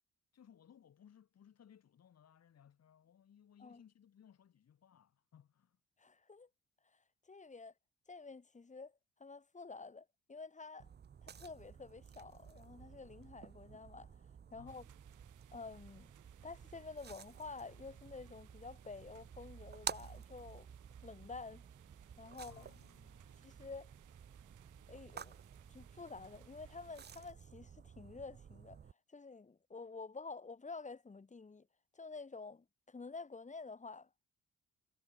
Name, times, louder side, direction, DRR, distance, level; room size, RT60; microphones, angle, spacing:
voice 1, 0.3-5.8 14.6-14.8 22.4-23.5 24.8-24.9 25.6-25.8, left 9 dB, 55° left, 4.3 m, -63 dB
voice 2, 6.0-6.5 7.3-7.7 8.1-8.9 9.2-10.9 11.2-14.1 14.5-14.8 15.5-16.1 16.4-20.7 21.0-21.6 22.2-22.6 23.4-23.9 24.9-25.4 25.7-28.8 29.1-31.7 31.9-34.1, left 4 dB, 25° left, 1.8 m, -50 dB
sound 1, 10.8-28.9, right 7 dB, 35° right, 0.8 m, -52 dB
sound 2, 14.7-27.3, right 14 dB, 85° right, 3.9 m, -67 dB
cardioid pair, 90°, 30 cm